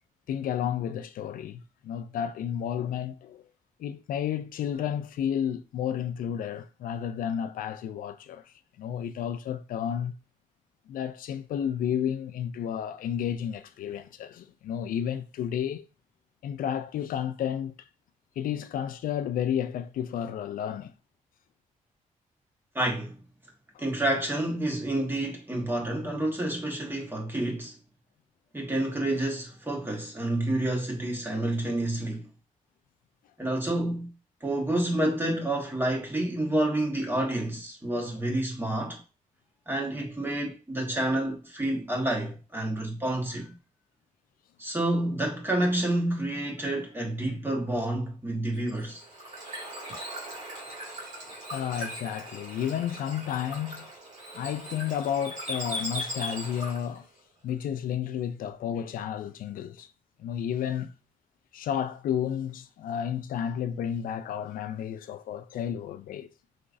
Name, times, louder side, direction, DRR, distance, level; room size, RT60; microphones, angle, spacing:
voice 1, 0.3-3.4 3.8-10.1 10.9-15.8 16.4-17.7 18.4-20.9 51.3-53.9 54.3-57.1 57.4-59.9 60.2-60.9 61.5-66.3, left 9 dB, 85° left, 0.4 m, -32 dB
voice 2, 22.7-23.2 23.8-27.7 28.5-32.3 33.4-34.1 34.4-39.0 39.7-43.5 44.6-49.0, right 1 dB, 15° right, 1.6 m, -29 dB
Bird / Water, 48.5-57.0, equal, 60° right, 2.3 m, -39 dB
5.0 x 3.0 x 2.6 m
cardioid pair, 90°, 14 cm